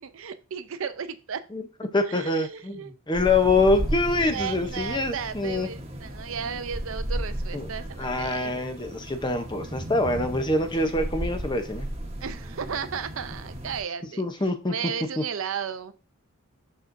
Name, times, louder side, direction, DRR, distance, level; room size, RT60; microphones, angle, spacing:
voice 1, 0.0-1.4 2.1-2.9 4.2-8.5 12.2-14.3 14.7-15.9, right 6 dB, 65° right, 11 dB, 0.5 m, -34 dB
voice 2, 1.9-5.7 7.5-7.7 8.0-11.9 14.2-14.7, left 2 dB, 20° left, 7 dB, 0.6 m, -25 dB
sound 1, 3.1-13.8, right 1 dB, 30° right, 1.1 m, -35 dB
6.5 x 6.0 x 2.6 m, 0.33 s
head